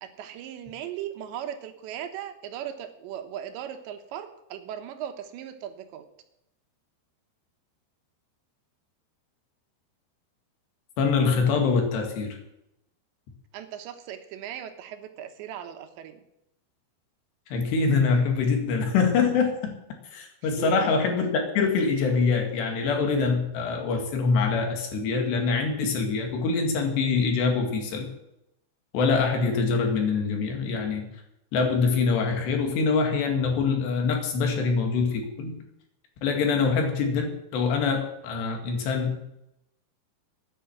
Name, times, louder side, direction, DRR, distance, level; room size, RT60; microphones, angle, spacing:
voice 1, 0.0-6.1 13.5-16.2 20.6-20.7, right 10 dB, 90° right, 8 dB, 3.4 m, -38 dB
voice 2, 11.0-12.4 17.5-19.8 20.1-28.1 28.9-31.1 31.5-35.6 36.2-39.2, left 4 dB, 75° left, 3 dB, 4.3 m, -24 dB
12.0 x 10.0 x 7.3 m, 0.82 s
omnidirectional pair, 5.0 m